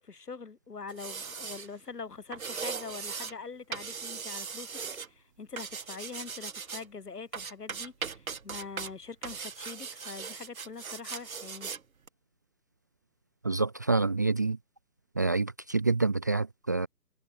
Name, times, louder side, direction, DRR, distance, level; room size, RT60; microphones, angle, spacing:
voice 1, 0.0-4.8 5.0-11.7, left 4 dB, 70° left, 6.8 m, -43 dB
sound 1, 0.9-1.7 2.3-3.3 3.7-5.1 5.6-6.9 7.3-8.9 9.2-11.8 12.1-12.2, right 6 dB, 55° right, 4.5 m, -39 dB
voice 2, 13.4-14.6 15.1-16.9, right 3 dB, 10° right, 0.9 m, -27 dB
hypercardioid pair, 165°, 48 cm